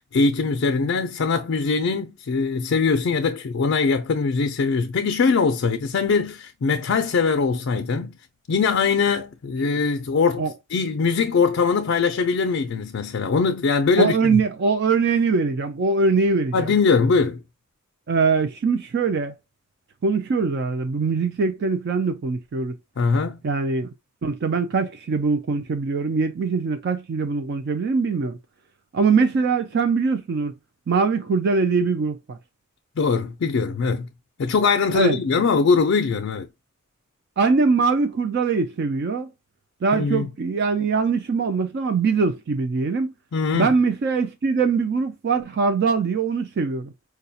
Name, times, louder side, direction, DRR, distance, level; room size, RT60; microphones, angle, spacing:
voice 1, 0.0-8.1 8.5-14.4 16.5-17.4 23.0-23.4 33.0-34.1 34.4-36.5 39.9-40.3 43.3-43.7, left 4 dB, 60° left, 0.4 m, -22 dB
voice 2, 14.0-16.7 18.1-19.3 20.0-22.8 23.4-23.9 24.2-28.4 28.9-30.5 30.9-32.4 34.9-35.2 37.4-39.3 39.8-43.1 43.5-46.9, right 4 dB, 50° right, 0.3 m, -22 dB
4.7 x 2.2 x 2.7 m
head